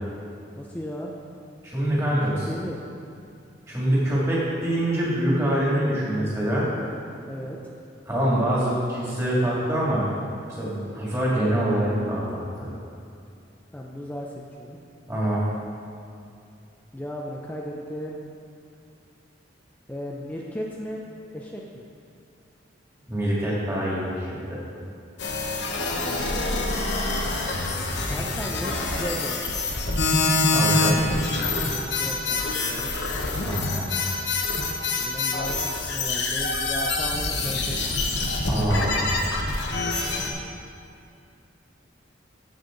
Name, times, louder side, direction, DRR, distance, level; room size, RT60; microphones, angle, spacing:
voice 1, 0.5-1.1 2.1-2.8 7.3-7.6 13.7-14.8 16.9-18.2 19.9-21.1 21.3-21.9 25.5-26.2 28.1-29.5 32.0-32.9 35.0-38.0 39.7-40.2, equal, 10° left, -2 dB, 0.5 m, -36 dB
voice 2, 1.6-2.5 3.7-6.7 8.1-10.1 10.6-12.7 15.1-15.4 23.1-24.6 30.5-31.0 33.4-33.9 38.5-39.2, right 1 dB, 15° right, -7 dB, 2.4 m, -25 dB
sound 1, 25.2-40.3, left 3 dB, 65° left, 1.0 m, -26 dB
14.0 x 5.5 x 3.9 m, 2.5 s
head